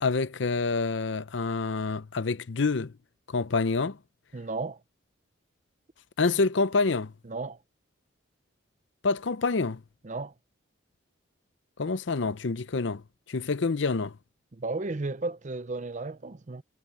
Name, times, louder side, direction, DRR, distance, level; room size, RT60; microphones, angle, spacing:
voice 1, 0.0-2.9 3.3-4.0 6.2-7.1 9.0-9.8 11.8-13.0 13.3-14.1, left 4 dB, 65° left, 0.6 m, -27 dB
voice 2, 4.3-4.8 7.3-7.6 10.0-10.3 14.5-16.6, right 3 dB, 40° right, 0.6 m, -34 dB
head